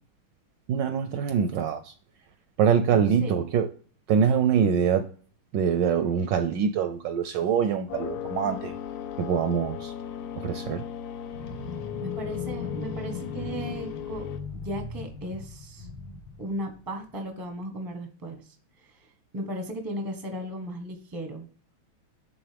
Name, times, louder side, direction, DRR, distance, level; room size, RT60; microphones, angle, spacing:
voice 1, 0.7-1.9 2.6-3.7 4.1-5.1 5.5-8.7 9.2-9.9 10.4-10.8, right 7 dB, 75° right, 9 dB, 1.0 m, -24 dB
voice 2, 2.9-3.4 12.0-15.9 16.4-19.1 19.3-21.5, right 1 dB, 20° right, 5 dB, 0.5 m, -36 dB
sound 1, 7.9-14.4, left 9 dB, 65° left, 1.1 m, -37 dB
sound 2, 11.3-17.2, left 4 dB, 85° left, 1.9 m, -38 dB
8.5 x 3.7 x 3.3 m, 0.42 s
omnidirectional pair, 2.3 m